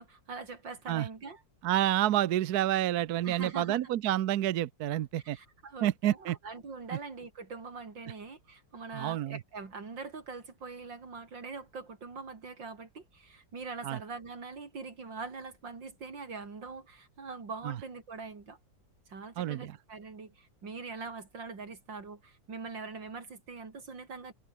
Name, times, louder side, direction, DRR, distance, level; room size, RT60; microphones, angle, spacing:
voice 1, 0.0-1.4 3.2-3.9 5.3-18.6 19.1-24.3, right 4 dB, 90° right, 4.3 m, -43 dB
voice 2, 1.6-5.4 5.8-6.4 8.9-9.4 13.8-14.0 17.6-17.8 19.4-19.7, right 13 dB, 65° right, 1.2 m, -29 dB
omnidirectional pair, 1.9 m